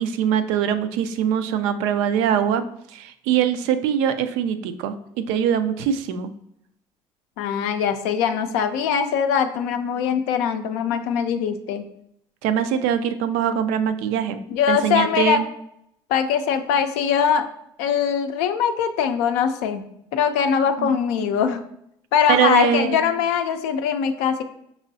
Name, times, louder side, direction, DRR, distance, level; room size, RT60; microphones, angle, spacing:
voice 1, 0.0-6.3 12.4-14.4 14.7-15.5 20.8-21.0 22.3-23.0, right 8 dB, 85° right, 10 dB, 0.4 m, -22 dB
voice 2, 7.4-11.8 14.5-15.4 16.1-17.5 17.8-19.8 20.1-21.6 22.1-24.4, left 7 dB, 90° left, 7 dB, 0.4 m, -22 dB
5.3 x 3.0 x 2.6 m, 0.75 s
supercardioid pair, 90°, 12 cm